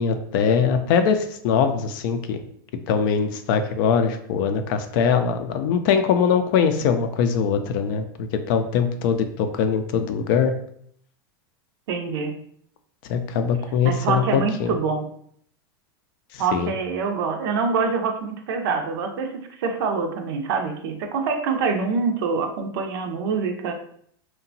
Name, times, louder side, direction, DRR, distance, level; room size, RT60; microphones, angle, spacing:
voice 1, 0.0-2.4 2.9-10.5 13.1-14.7 16.3-16.7, left 6 dB, 60° left, 8 dB, 0.4 m, -22 dB
voice 2, 11.9-12.3 13.8-15.1 16.4-23.7, right 5 dB, 70° right, 5 dB, 0.5 m, -25 dB
2.8 x 2.2 x 2.6 m, 0.64 s
hypercardioid pair, 110°, 13 cm